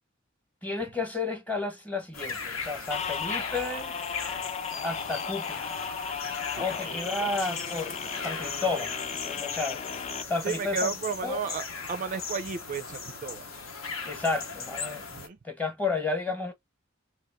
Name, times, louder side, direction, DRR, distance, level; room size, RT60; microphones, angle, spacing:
voice 1, 0.6-3.9 4.8-5.8 6.6-8.9 9.2-9.8 10.3-10.9 11.2-11.4 14.0-15.0 15.4-16.5, left 3 dB, 10° left, 1.0 m, -32 dB
sound 1, 2.1-15.3, left 4 dB, 75° left, 1.0 m, -38 dB
sound 2, 2.9-10.2, left 6 dB, 30° left, 0.3 m, -35 dB
voice 2, 6.5-7.3 10.4-13.4 15.1-15.4, right 5 dB, 40° right, 0.4 m, -34 dB
3.0 x 2.8 x 3.4 m
head